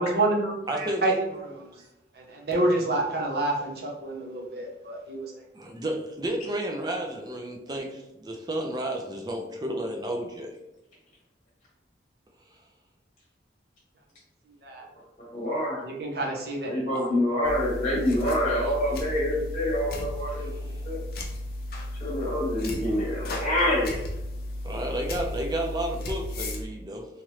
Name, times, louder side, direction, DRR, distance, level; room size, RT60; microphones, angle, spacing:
voice 1, 0.0-1.7 2.1-5.3 14.5-14.9 15.8-16.8, right 2 dB, 55° right, -1 dB, 0.7 m, -28 dB
voice 2, 0.7-1.2 5.5-10.5 16.9-17.1 24.6-27.1, right 1 dB, 20° right, 2 dB, 0.4 m, -32 dB
voice 3, 15.2-15.8 16.7-21.0 22.0-24.0, left 1 dB, 30° left, -6 dB, 0.9 m, -26 dB
sound 1, 17.4-26.6, left 1 dB, 55° left, 0.5 m, -34 dB
3.0 x 2.5 x 3.0 m, 0.96 s
head